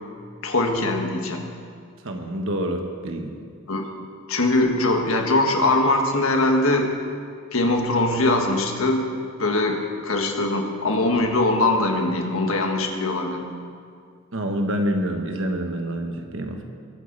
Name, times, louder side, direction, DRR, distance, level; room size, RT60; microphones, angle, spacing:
voice 1, 0.4-1.5 3.7-3.9 4.3-6.9 7.5-9.1 9.4-13.5, left 2 dB, 75° left, 2 dB, 1.6 m, -22 dB
voice 2, 2.0-3.3 14.3-16.6, equal, 60° right, 4 dB, 1.3 m, -27 dB
22.0 x 8.4 x 4.0 m, 2.2 s
head